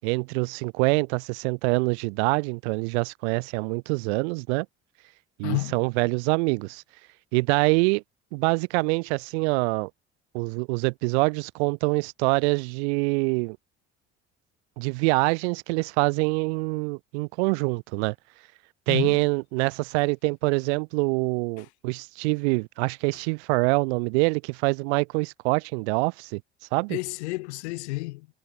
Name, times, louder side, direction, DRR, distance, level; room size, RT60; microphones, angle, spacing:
voice 1, 0.0-4.7 5.4-6.8 7.3-8.0 8.3-9.9 10.3-13.6 14.8-18.1 18.9-26.4 26.7-27.0, right 30 dB, 75° right, 5.5 m, -25 dB
voice 2, 5.4-5.8 18.9-19.2 21.6-21.7 26.9-28.3, left 22 dB, 80° left, 3.4 m, -30 dB
hypercardioid pair, 60°, 33 cm